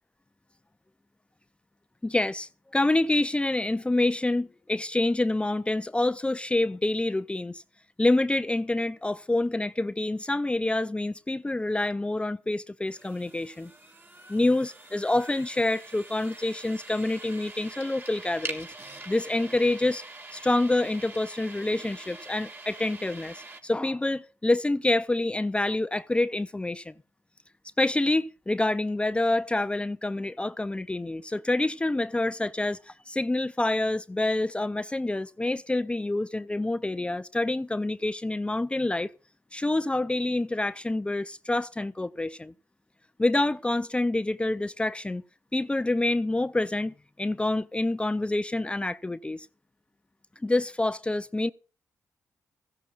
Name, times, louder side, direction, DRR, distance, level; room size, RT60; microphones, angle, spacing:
voice 1, 2.0-7.6 8.0-13.7 14.3-18.7 19.1-20.0 20.3-26.9 27.8-39.1 39.5-42.5 43.2-45.2 45.5-49.5 50.4-51.5, left 2 dB, 15° left, 0.6 m, -27 dB
sound 1, 12.9-23.6, right 2 dB, 30° right, 3.2 m, -44 dB
16.5 x 15.0 x 2.5 m
cardioid pair, 65°, 7 cm